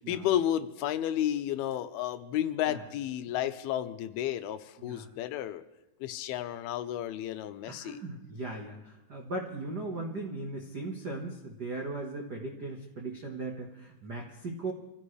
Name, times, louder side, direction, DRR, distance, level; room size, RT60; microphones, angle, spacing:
voice 1, 0.0-5.6 6.0-8.0, left 11 dB, 85° left, 11 dB, 2.7 m, -32 dB
voice 2, 4.8-5.1 7.7-14.7, right 2 dB, 85° right, 1 dB, 0.9 m, -38 dB
26.5 x 15.5 x 3.3 m, 0.99 s
omnidirectional pair, 4.4 m